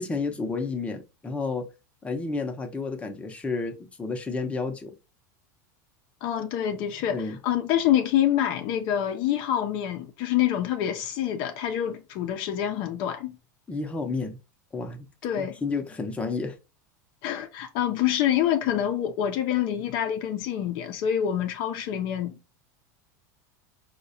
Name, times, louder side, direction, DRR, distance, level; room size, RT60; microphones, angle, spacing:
voice 1, 0.0-1.7 2.0-5.0 7.1-7.4 13.7-14.4 14.7-15.1 15.4-16.6, left 4 dB, 15° left, 0.6 m, -31 dB
voice 2, 6.2-13.4 15.2-15.6 17.2-22.4, left 10 dB, 55° left, 0.5 m, -26 dB
4.4 x 2.2 x 2.6 m
hypercardioid pair, 100°, 10 cm